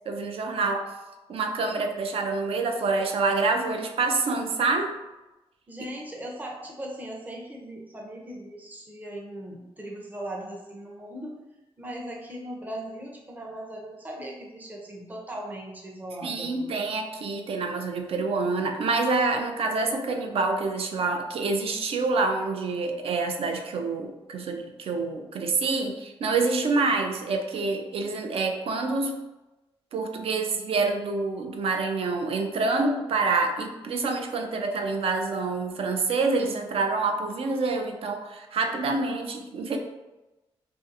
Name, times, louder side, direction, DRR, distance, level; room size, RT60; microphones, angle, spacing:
voice 1, 0.1-0.9 1.3-4.9 16.2-29.2 29.9-39.8, right 3 dB, 65° right, 4 dB, 0.4 m, -27 dB
voice 2, 5.7-11.4 11.8-16.8, right 1 dB, 15° right, -1 dB, 0.5 m, -39 dB
2.6 x 2.3 x 2.5 m, 1.0 s
cardioid pair, 80°, 10 cm